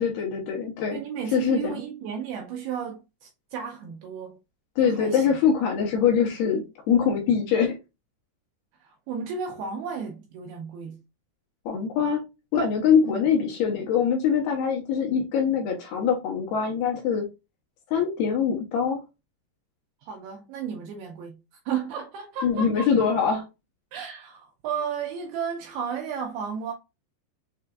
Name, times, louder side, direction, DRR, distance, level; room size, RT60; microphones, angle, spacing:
voice 1, 0.0-1.0 1.3-1.8 4.8-7.8 11.7-12.2 12.5-17.2 17.9-19.0 22.4-23.5, left 7 dB, 75° left, 2.4 m, -23 dB
voice 2, 0.9-4.4 4.8-5.4 8.8-11.0 13.1-13.2 20.0-21.4 21.7-22.9 23.9-26.7, right 6 dB, 80° right, 2.2 m, -33 dB
6.7 x 2.5 x 2.3 m
omnidirectional pair, 5.0 m